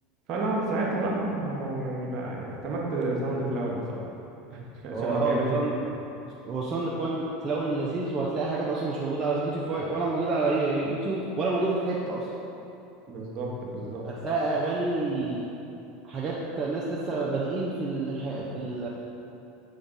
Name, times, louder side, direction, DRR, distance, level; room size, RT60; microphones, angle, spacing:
voice 1, 0.3-4.1 4.5-5.6 13.1-14.0, right 2 dB, 50° right, -3 dB, 1.2 m, -30 dB
voice 2, 4.9-5.7 6.5-12.3 14.0-15.5 16.1-18.9, right 3 dB, 30° right, -5 dB, 0.7 m, -28 dB
6.9 x 3.8 x 3.8 m, 2.8 s
figure-of-eight pair, 75°, 0 cm